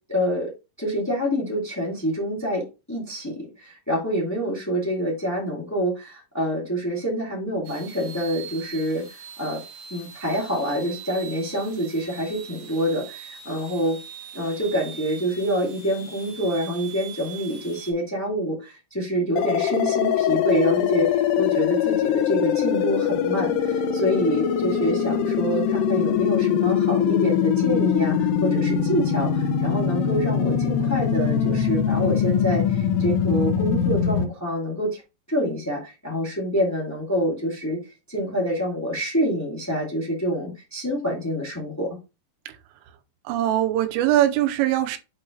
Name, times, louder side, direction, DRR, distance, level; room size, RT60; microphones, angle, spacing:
voice 1, 0.1-0.5 0.8-9.6 9.9-14.0 14.3-35.0 35.3-41.9, equal, 20° left, 0.5 m, -26 dB
sound 1, 7.6-17.9, right 7 dB, 65° right, 2.1 m, -42 dB
sound 2, 19.4-34.3, left 8 dB, 75° left, 2.5 m, -22 dB
voice 2, 43.3-45.0, right 12 dB, 90° right, 3.4 m, -21 dB
8.6 x 3.3 x 3.9 m
omnidirectional pair, 5.7 m